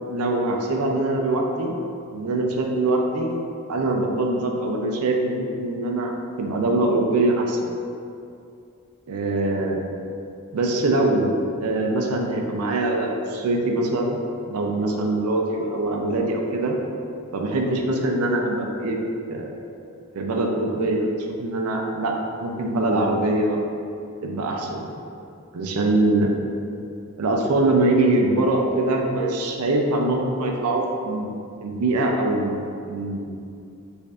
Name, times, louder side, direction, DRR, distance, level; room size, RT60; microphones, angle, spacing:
voice 1, 0.1-1.7 2.1-3.3 3.7-7.6 9.1-9.8 10.5-14.2 14.5-16.8 17.3-19.0 19.3-19.5 20.2-21.1 21.4-22.1 22.4-23.6 24.2-24.9 25.5-26.3 27.2-31.3 31.6-33.3, right 2 dB, 85° right, 1 dB, 0.4 m, -23 dB
4.7 x 2.5 x 2.4 m, 2.5 s
head